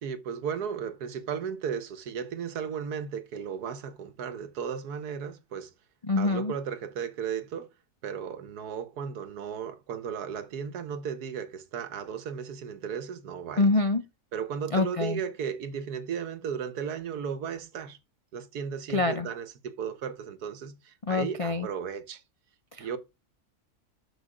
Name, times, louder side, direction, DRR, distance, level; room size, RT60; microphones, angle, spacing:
voice 1, 0.0-5.7 6.2-7.7 8.0-13.7 14.3-18.0 18.3-22.2 22.8-23.0, right 7 dB, 85° right, 1.6 m, -35 dB
voice 2, 6.0-6.5 13.6-14.0 14.7-15.2 18.9-19.3 21.1-21.7 22.7-23.0, left 3 dB, 50° left, 0.3 m, -26 dB
8.1 x 6.2 x 4.9 m
omnidirectional pair, 1.6 m